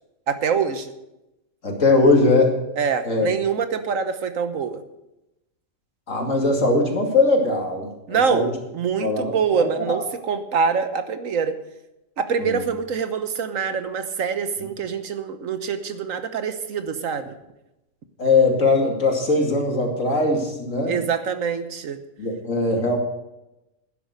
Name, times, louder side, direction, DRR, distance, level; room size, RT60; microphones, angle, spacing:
voice 1, 0.3-0.9 2.8-4.8 8.1-11.6 12.2-17.4 20.9-22.0, right 6 dB, 85° right, 9 dB, 1.5 m, -25 dB
voice 2, 1.6-2.6 3.0-3.3 6.1-8.5 9.0-10.0 12.4-12.6 18.2-21.0 22.2-23.0, left 3 dB, 75° left, 2 dB, 2.8 m, -20 dB
12.0 x 10.0 x 6.5 m, 0.92 s
omnidirectional pair, 1.3 m